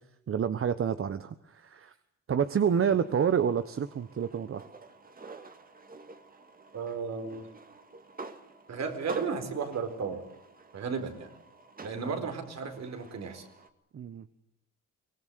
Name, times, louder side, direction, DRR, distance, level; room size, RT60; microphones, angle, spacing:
voice 1, 0.3-2.0 2.3-4.6 12.0-12.3 13.9-14.2, right 7 dB, 45° right, 12 dB, 1.2 m, -28 dB
sound 1, 2.4-13.7, right 3 dB, 30° right, 2.2 m, -48 dB
voice 2, 6.7-7.5 8.7-10.2 10.7-11.3 11.8-13.4, right 5 dB, 60° right, 7 dB, 4.6 m, -34 dB
24.0 x 19.0 x 7.7 m, 0.82 s
cardioid pair, 90°, 30 cm